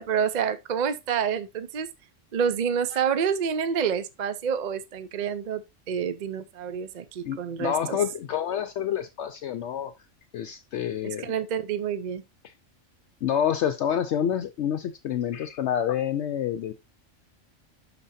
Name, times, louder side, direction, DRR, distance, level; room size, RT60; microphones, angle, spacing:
voice 1, 0.0-1.9 2.3-8.0 11.0-12.2, right 7 dB, 50° right, 0.6 m, -28 dB
voice 2, 7.2-9.9 10.3-11.3 13.2-16.7, left 9 dB, 70° left, 0.8 m, -28 dB
11.0 x 4.0 x 2.6 m
omnidirectional pair, 1.3 m